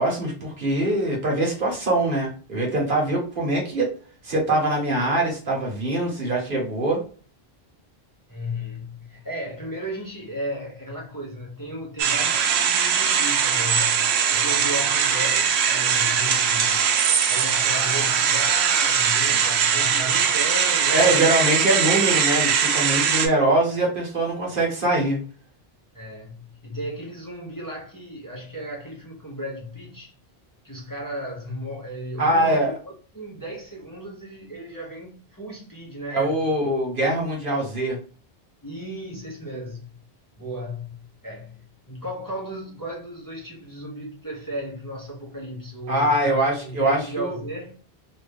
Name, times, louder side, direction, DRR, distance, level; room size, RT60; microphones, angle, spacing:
voice 1, 0.0-3.9 4.2-7.0 20.9-25.2 32.2-32.7 36.1-38.0 45.9-47.4, right 1 dB, 55° right, 1.2 m, -23 dB
voice 2, 8.3-16.8 17.2-21.6 21.9-22.1 25.9-30.1 30.6-36.6 38.6-39.9 40.4-47.7, equal, 20° left, 0.8 m, -35 dB
sound 1, 12.0-23.3, right 7 dB, 80° right, 0.8 m, -21 dB
2.8 x 2.5 x 3.3 m
omnidirectional pair, 1.1 m